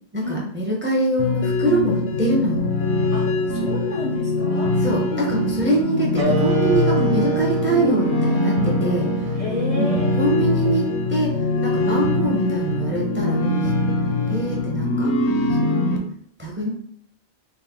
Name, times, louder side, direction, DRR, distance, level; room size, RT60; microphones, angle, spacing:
voice 1, 0.1-2.7 4.8-9.1 9.7-11.4 11.6-13.7 14.3-15.1 15.6-16.0 16.4-16.7, right 1 dB, 15° right, -3 dB, 0.5 m, -24 dB
sound 1, 1.2-16.0, left 2 dB, 80° left, 0.9 m, -22 dB
voice 2, 3.1-4.8 5.7-6.5 9.3-10.2, left 1 dB, 50° left, -2 dB, 0.5 m, -31 dB
sound 2, 6.2-11.3, right 6 dB, 80° right, 1.1 m, -28 dB
3.4 x 2.1 x 3.4 m, 0.63 s
omnidirectional pair, 1.1 m